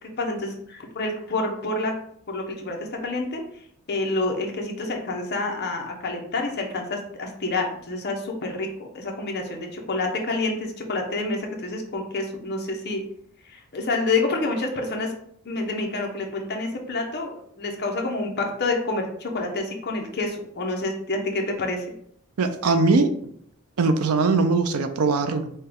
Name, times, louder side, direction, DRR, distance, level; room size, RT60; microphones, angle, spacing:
voice 1, 0.0-1.9 2.3-3.4 3.9-8.7 8.9-13.0 13.4-15.1 15.4-21.9, left 2 dB, 45° left, 1 dB, 0.8 m, -28 dB
voice 2, 22.4-23.1 23.8-25.5, right 3 dB, 75° right, 8 dB, 0.5 m, -21 dB
5.5 x 2.3 x 3.4 m, 0.67 s
head